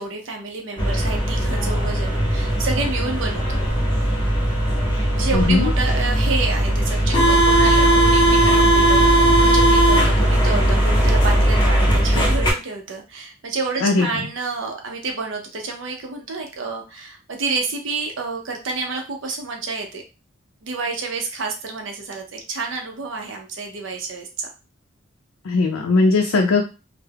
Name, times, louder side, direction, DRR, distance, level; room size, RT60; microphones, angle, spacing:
voice 1, 0.0-3.5 5.1-20.0 20.6-24.5, right 3 dB, 60° right, 2 dB, 0.5 m, -29 dB
sound 1, 0.8-12.5, right 1 dB, 20° left, 0.6 m, -18 dB
voice 2, 5.3-5.7 13.8-14.1 25.5-26.6, left 3 dB, 85° left, 2 dB, 0.4 m, -18 dB
2.2 x 2.0 x 3.3 m, 0.31 s
head